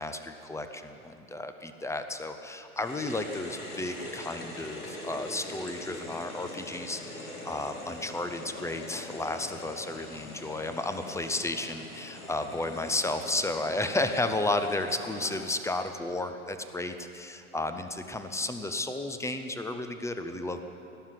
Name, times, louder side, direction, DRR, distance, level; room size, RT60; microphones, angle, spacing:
voice 1, 0.0-20.6, left 2 dB, 5° left, 8 dB, 0.6 m, -33 dB
sound 1, 2.7-15.4, left 2 dB, 85° left, 2.2 m, -42 dB
18.0 x 7.3 x 9.9 m, 2.7 s
figure-of-eight pair, 90°, 43 cm